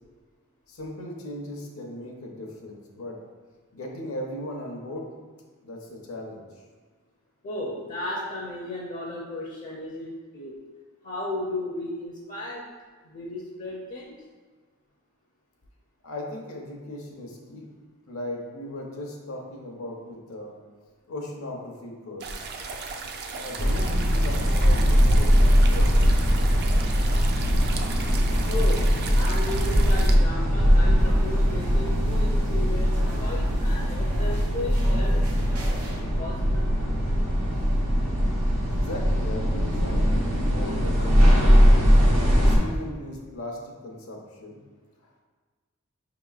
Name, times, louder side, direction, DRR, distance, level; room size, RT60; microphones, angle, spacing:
voice 1, 0.7-3.2 3.7-5.1 5.6-6.6 16.0-17.7 18.1-20.5 21.1-22.5 23.4-25.9 38.7-42.0 42.4-44.6 45.0-45.2, left 1 dB, 75° left, 0 dB, 0.7 m, -37 dB
voice 2, 7.4-10.6 11.0-12.7 13.0-14.2 28.5-35.2 35.6-35.7 36.0-36.7, left 1 dB, 40° left, -3 dB, 0.4 m, -35 dB
sound 1, 22.2-30.2, right 4 dB, 50° right, 0.3 m, -36 dB
sound 2, 23.6-42.6, equal, 70° right, 1.0 m, -21 dB
sound 3, 31.0-36.0, equal, 90° right, 0.7 m, -37 dB
5.4 x 2.9 x 2.3 m, 1.5 s
head